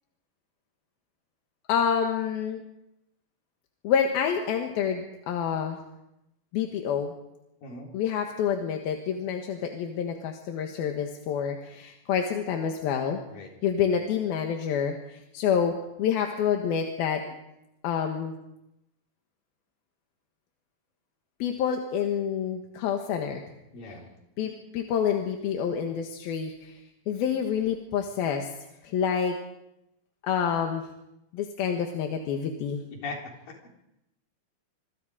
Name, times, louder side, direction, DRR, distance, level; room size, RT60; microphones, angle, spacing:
voice 1, 1.7-2.6 3.8-5.8 6.5-7.1 7.9-13.2 13.6-17.4 17.8-18.3 21.4-23.4 24.4-26.7 27.1-28.5 28.8-29.4 30.2-30.8 31.3-32.8, left 7 dB, 85° left, 3 dB, 3.4 m, -28 dB
voice 2, 7.6-7.9 13.3-13.5 23.7-24.1 24.4-24.5 32.9-33.2, left 3 dB, 70° left, 0 dB, 5.5 m, -38 dB
26.0 x 24.5 x 5.0 m, 0.87 s
omnidirectional pair, 4.2 m